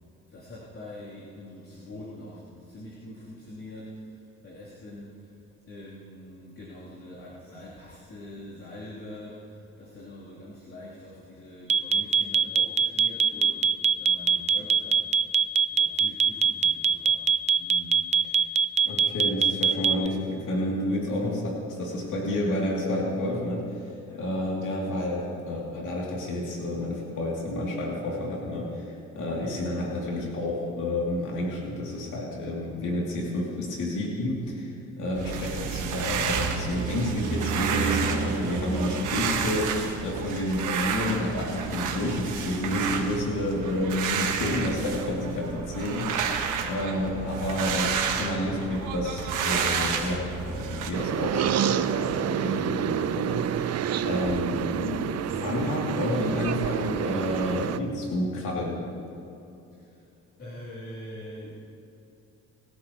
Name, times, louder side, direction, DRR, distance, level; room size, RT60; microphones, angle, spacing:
voice 1, 0.3-5.3 5.7-13.7 14.0-15.1 15.7-17.2 17.6-18.3 21.9-22.1 24.1-24.5 29.3-30.0 55.0-55.8 59.7-60.0 60.4-61.5, left 1 dB, 45° left, -7 dB, 3.3 m, -44 dB
sound 1, 11.7-20.1, right 7 dB, 25° right, 0.4 m, -21 dB
voice 2, 18.8-28.9 29.1-46.3 46.6-55.0 55.3-58.8, left 1 dB, 80° left, -3 dB, 2.9 m, -30 dB
sound 2, 35.1-50.9, right 6 dB, 90° right, 1.6 m, -30 dB
sound 3, 50.9-57.8, right 9 dB, 60° right, 0.6 m, -28 dB
25.0 x 12.5 x 3.1 m, 2.7 s
cardioid pair, 90°, 30 cm